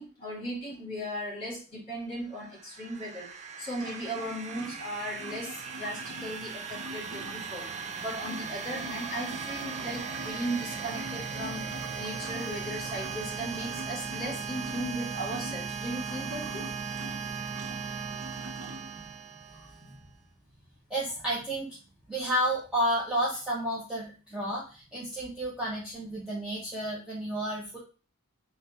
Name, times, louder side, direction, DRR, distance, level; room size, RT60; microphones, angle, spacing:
voice 1, 0.0-3.3 3.6-7.7 8.0-16.7, equal, 25° left, -4 dB, 1.9 m, -37 dB
sound 1, 2.3-20.0, right 5 dB, 30° right, 0.3 m, -38 dB
sound 2, 3.7-7.6 8.0-19.1, right 1 dB, 75° right, 0.6 m, -45 dB
voice 2, 19.5-20.1 20.9-21.7 22.1-27.8, right 1 dB, 5° right, -8 dB, 0.8 m, -31 dB
4.0 x 2.3 x 4.0 m, 0.34 s
head